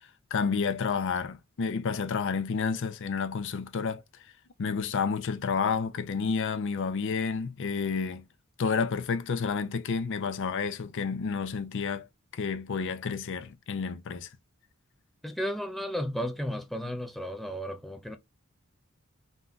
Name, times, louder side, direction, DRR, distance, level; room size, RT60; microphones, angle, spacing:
voice 1, 0.3-4.0 4.6-8.2 8.6-12.1 12.3-14.3, left 5 dB, 60° left, 0.5 m, -30 dB
voice 2, 15.2-18.2, equal, ahead, 0.4 m, -33 dB
2.7 x 2.3 x 3.6 m
head